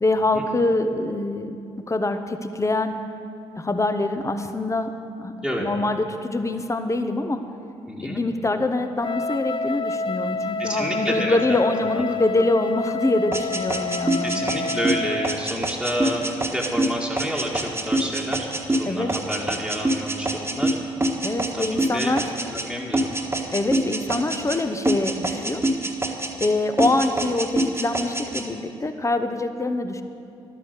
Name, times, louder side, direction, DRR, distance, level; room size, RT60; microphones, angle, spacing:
voice 1, 0.0-3.0 3.6-4.9 5.2-5.3 5.6-7.4 8.0-14.5 18.8-19.1 21.2-22.2 22.6-22.8 23.5-25.7 26.4-30.0, left 2 dB, 20° left, 8 dB, 1.1 m, -24 dB
voice 2, 7.9-8.2 10.6-11.4 11.9-12.0 14.2-20.7 21.5-22.1 22.5-23.1, equal, 5° left, -4 dB, 1.9 m, -29 dB
Wind instrument woodwind instrument, 9.0-15.4, left 3 dB, 40° left, 0.4 m, -29 dB
sound 1, 13.3-22.7 22.9-24.6 24.8-26.5 26.8-28.4, right 1 dB, 20° right, 1.6 m, -25 dB
12.0 x 10.0 x 6.7 m, 2.5 s
hypercardioid pair, 40°, 13 cm